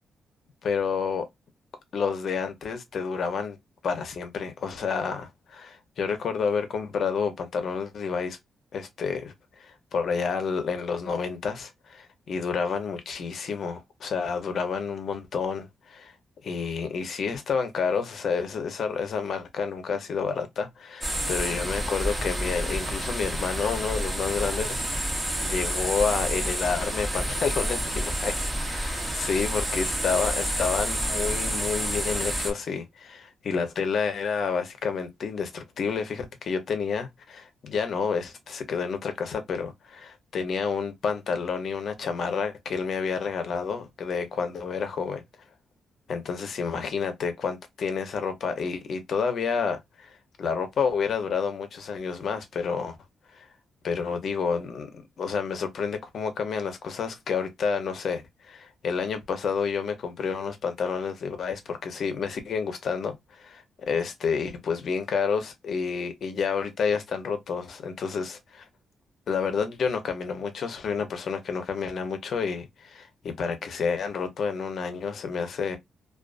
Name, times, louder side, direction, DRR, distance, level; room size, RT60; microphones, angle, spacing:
voice 1, 0.6-1.3 1.9-3.6 3.8-8.4 8.7-16.1 16.4-25.0 25.4-28.3 28.7-45.2 46.1-53.0 53.3-53.4 53.8-68.7 69.3-75.8, left 5 dB, 55° left, 0.7 m, -29 dB
sound 1, 21.0-32.5, right 1 dB, 15° right, 0.8 m, -29 dB
2.4 x 2.4 x 2.4 m
wide cardioid pair, 165°, 0 cm